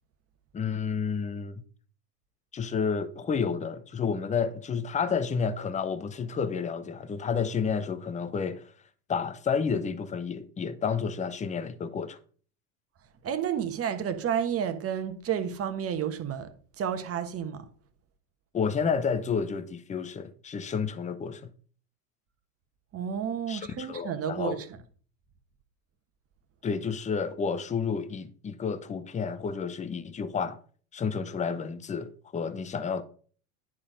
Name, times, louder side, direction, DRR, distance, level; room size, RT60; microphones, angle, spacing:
voice 1, 0.5-1.6 2.5-8.7 9.1-12.2 18.5-21.5 23.5-24.6 26.6-30.6 30.9-33.0, left 6 dB, 15° left, 0.7 m, -30 dB
voice 2, 13.2-16.5 16.8-17.6 22.9-24.8, right 8 dB, 30° right, 1.3 m, -31 dB
10.0 x 4.4 x 5.1 m
hypercardioid pair, 95°, 47 cm